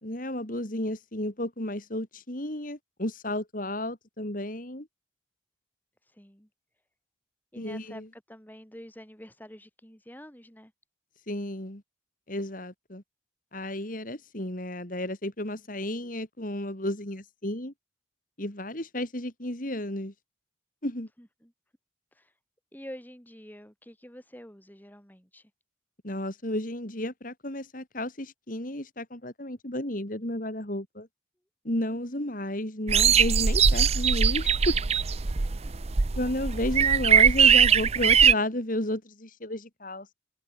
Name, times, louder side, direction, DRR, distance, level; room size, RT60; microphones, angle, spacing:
voice 1, 0.0-4.9 7.6-8.1 11.3-11.8 12.3-13.0 13.5-17.7 18.4-20.1 20.8-21.1 26.0-31.1 31.6-34.8 36.2-40.1, left 1 dB, 45° left, 3.2 m, -32 dB
voice 2, 6.1-6.5 7.5-10.7 21.2-21.5 22.1-22.3 22.7-25.5 31.9-32.0 35.6-35.9, equal, 10° left, 4.9 m, -47 dB
sound 1, 32.9-38.3, right 7 dB, 35° right, 0.6 m, -21 dB
open air
head